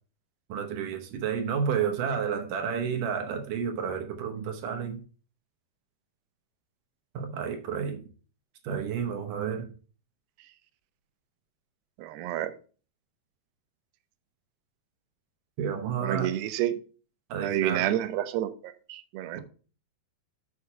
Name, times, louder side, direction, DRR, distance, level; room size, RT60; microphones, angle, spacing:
voice 1, 0.5-5.0 7.1-8.0 8.6-9.7 15.6-16.3 17.3-17.9, right 7 dB, 70° right, 4 dB, 2.2 m, -31 dB
voice 2, 12.0-12.5 16.0-16.7 17.4-19.4, right 12 dB, 85° right, 12 dB, 2.8 m, -29 dB
6.5 x 5.9 x 5.6 m, 0.38 s
omnidirectional pair, 4.6 m